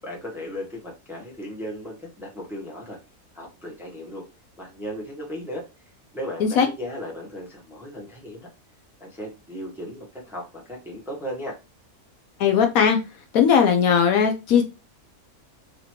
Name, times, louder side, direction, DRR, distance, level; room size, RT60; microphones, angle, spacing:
voice 1, 0.0-3.0 3.3-4.2 4.6-5.7 6.1-8.5 9.0-11.6, equal, ahead, -2 dB, 1.0 m, -36 dB
voice 2, 12.4-13.0 13.3-14.6, left 7 dB, 70° left, 5 dB, 1.0 m, -18 dB
4.1 x 2.9 x 3.0 m, 0.27 s
omnidirectional pair, 1.6 m